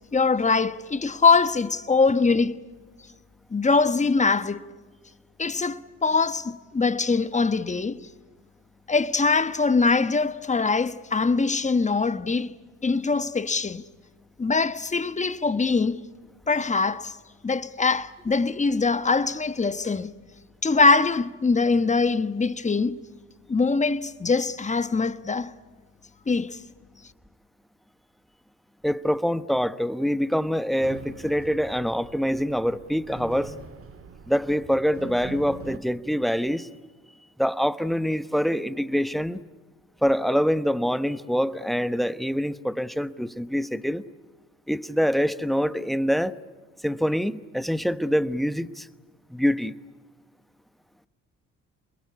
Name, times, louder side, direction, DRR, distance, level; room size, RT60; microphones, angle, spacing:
voice 1, 0.1-2.6 3.5-4.6 5.4-8.0 8.9-12.5 12.8-13.8 14.4-16.0 16.5-17.2 17.4-20.1 20.6-23.0 23.5-25.5 26.3-26.6, left 4 dB, 20° left, 1.2 m, -23 dB
voice 2, 28.8-33.5 34.3-36.7 37.4-39.4 40.0-44.0 44.7-46.4 46.8-48.9 49.3-49.7, equal, ahead, 1.0 m, -25 dB
sound 1, 30.8-35.8, right 4 dB, 40° right, 2.0 m, -43 dB
28.5 x 21.5 x 8.4 m
supercardioid pair, 75°, 33 cm